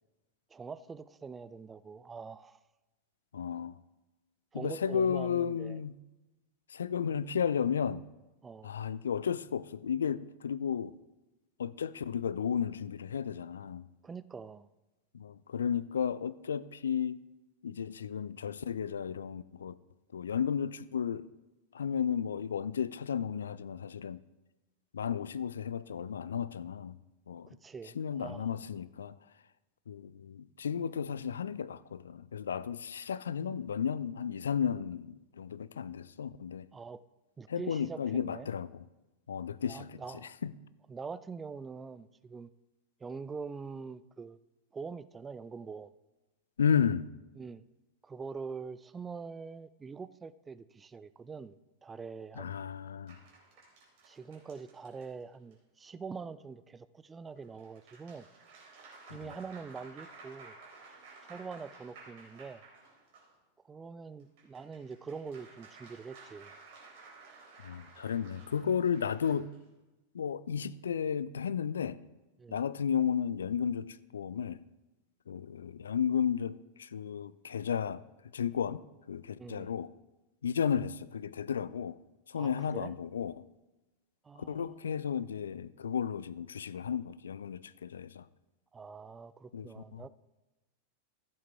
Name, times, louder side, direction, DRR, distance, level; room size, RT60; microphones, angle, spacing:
voice 1, 0.5-2.6 4.5-5.8 8.4-8.7 14.0-14.7 27.6-28.5 36.7-37.0 37.4-38.5 39.7-40.3 40.9-42.5 43.0-44.4 44.7-45.9 47.4-47.6 48.0-51.6 51.8-52.5 54.1-58.3 59.1-60.6 61.2-62.6 63.6-66.5 72.4-72.6 79.4-79.7 82.3-82.9 84.2-85.0 88.7-90.1, right 5 dB, 15° right, 0.4 m, -44 dB
voice 2, 3.3-3.8 4.5-5.9 6.7-8.0 8.6-10.9 11.6-13.8 15.1-17.2 17.6-19.7 20.1-21.3 21.7-24.2 24.9-27.0 27.3-27.5 28.0-29.1 29.9-36.7 37.5-38.8 39.3-40.0 40.4-40.5 46.6-47.1 52.4-53.2 67.6-69.5 70.1-72.0 72.5-74.6 75.3-78.0 78.3-78.8 79.1-79.9 80.4-82.0 82.3-83.3 84.5-88.2 89.5-90.0, left 7 dB, 70° left, 0.4 m, -33 dB
sound 1, 53.1-55.5 57.4-63.3 64.2-69.6, right 4 dB, 50° right, 3.6 m, -55 dB
14.5 x 7.5 x 3.4 m
figure-of-eight pair, 90°, 0 cm